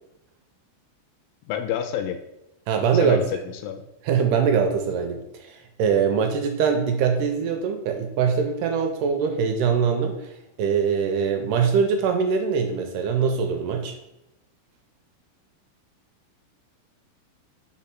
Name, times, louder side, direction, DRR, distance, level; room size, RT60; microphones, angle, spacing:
voice 1, 1.5-2.2 2.9-3.8, left 9 dB, 80° left, 8 dB, 2.2 m, -29 dB
voice 2, 2.7-3.2 4.1-10.2 10.6-13.9, right 6 dB, 80° right, 5 dB, 2.0 m, -22 dB
4.9 x 4.2 x 5.8 m, 0.87 s
omnidirectional pair, 4.2 m